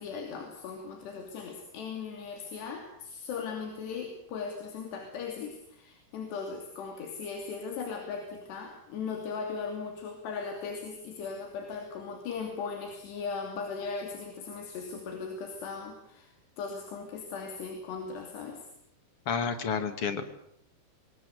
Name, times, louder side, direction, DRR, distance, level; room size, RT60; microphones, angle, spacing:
voice 1, 0.0-18.6, left 5 dB, 85° left, 4 dB, 5.0 m, -38 dB
voice 2, 19.3-20.3, left 6 dB, 45° left, 10 dB, 2.2 m, -30 dB
26.5 x 20.5 x 8.0 m, 0.71 s
omnidirectional pair, 4.7 m